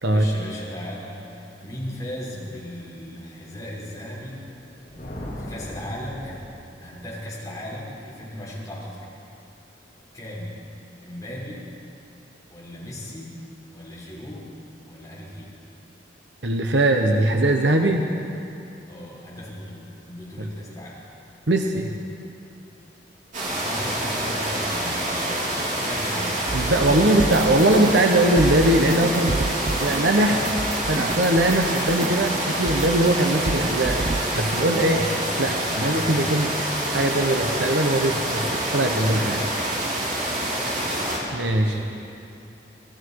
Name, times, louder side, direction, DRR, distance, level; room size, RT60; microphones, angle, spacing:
voice 1, 0.1-4.5 5.4-9.1 10.1-10.6 11.0-11.6 12.5-13.4 13.7-14.5 14.9-15.6 18.9-21.1 23.5-26.5 26.9-27.4 29.0-30.4 34.8-35.1 35.7-36.4 41.6-41.8, left 1 dB, 20° left, -5 dB, 6.0 m, -37 dB
Thunder, 4.6-6.9, equal, 45° left, 6.3 m, -38 dB
voice 2, 16.4-18.0 20.4-20.5 21.5-21.9 26.5-29.5 29.8-30.4 30.9-35.0 35.4-39.5 41.3-41.8, right 1 dB, 85° right, 3 dB, 1.3 m, -21 dB
sound 1, 23.3-41.2, right 1 dB, 45° right, 4.6 m, -27 dB
sound 2, 26.5-28.1 28.4-32.3 32.7-33.2 33.5-34.3, right 3 dB, 30° right, 0.5 m, -30 dB
27.5 x 20.0 x 4.9 m, 2.7 s
head